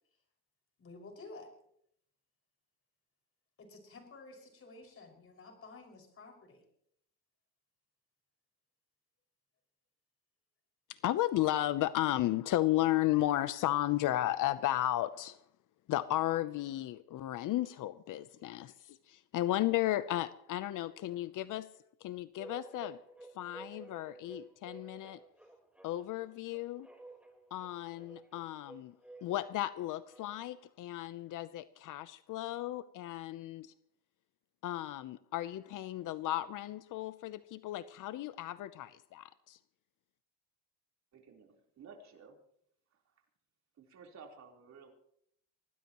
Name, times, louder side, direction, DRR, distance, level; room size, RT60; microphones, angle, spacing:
voice 1, 0.8-1.5 3.6-6.6, left 3 dB, 40° left, 3 dB, 5.9 m, -52 dB
voice 2, 10.9-15.4 15.9-21.7 22.0-23.0 23.4-25.2 25.8-26.9 27.5-28.9 29.2-33.7 34.6-39.6, left 14 dB, 70° left, 13 dB, 0.8 m, -34 dB
sound 1, 22.4-30.6, right 2 dB, 5° right, 4.1 m, -53 dB
voice 3, 41.1-42.4 42.9-43.2 43.8-44.9, right 5 dB, 55° right, 1 dB, 3.9 m, -55 dB
24.5 x 18.5 x 3.0 m, 0.69 s
cardioid pair, 110°, 33 cm